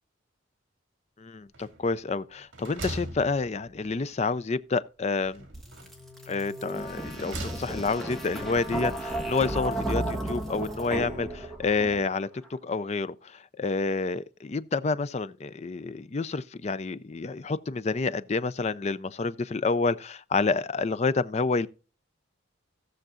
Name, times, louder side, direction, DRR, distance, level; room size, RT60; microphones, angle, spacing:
voice 1, 1.2-5.5 6.3-21.7, left 4 dB, 35° left, 0.4 m, -29 dB
sound 1, 1.5-2.0 2.4-4.0 5.2-6.1 6.8-8.0, right 1 dB, 65° right, 2.1 m, -40 dB
sound 2, 5.5-12.3, right 1 dB, ahead, 1.5 m, -34 dB
17.5 x 6.5 x 2.5 m
head